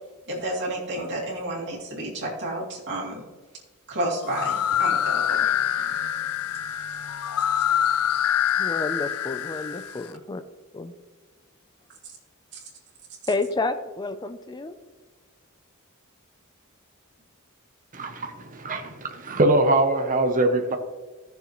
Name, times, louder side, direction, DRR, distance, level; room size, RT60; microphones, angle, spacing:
voice 1, 0.3-3.2 3.9-5.5 12.5-12.6, right 1 dB, 55° right, -4 dB, 2.5 m, -31 dB
sound 1, 4.2-10.0, left 9 dB, 70° left, 0.4 m, -25 dB
voice 2, 8.6-10.4 10.7-10.9 13.3-14.8, left 3 dB, 20° left, 10 dB, 0.5 m, -30 dB
voice 3, 17.9-20.8, right 2 dB, 35° right, 5 dB, 0.9 m, -23 dB
15.0 x 6.9 x 3.1 m, 1.3 s
head